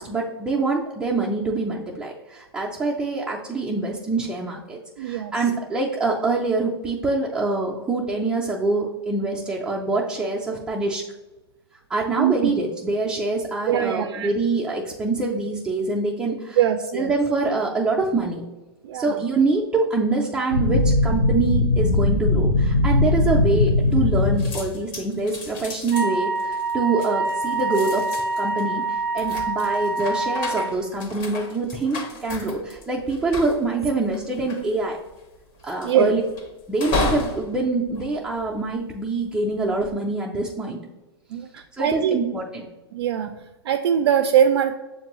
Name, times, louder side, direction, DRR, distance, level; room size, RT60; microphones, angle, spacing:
voice 1, 0.0-11.0 11.9-16.6 16.9-18.5 18.9-28.0 28.4-35.0 35.6-36.2 36.7-40.8 41.8-42.7, right 3 dB, 5° right, -5 dB, 0.4 m, -25 dB
voice 2, 5.0-5.3 12.2-12.5 13.7-14.3 16.6-17.1 18.8-19.2 35.8-36.2 41.3-42.2 42.9-44.7, right 9 dB, 65° right, 5 dB, 0.4 m, -22 dB
sound 1, 20.5-24.7, left 2 dB, 75° left, 0.9 m, -20 dB
sound 2, 23.6-24.1 24.4-38.9 39.5-39.9, left 3 dB, 35° left, 0.8 m, -34 dB
Wind instrument woodwind instrument, 25.9-30.7, right 3 dB, 35° right, 0.7 m, -26 dB
6.7 x 2.6 x 3.0 m, 1.1 s
hypercardioid pair, 130°, 14 cm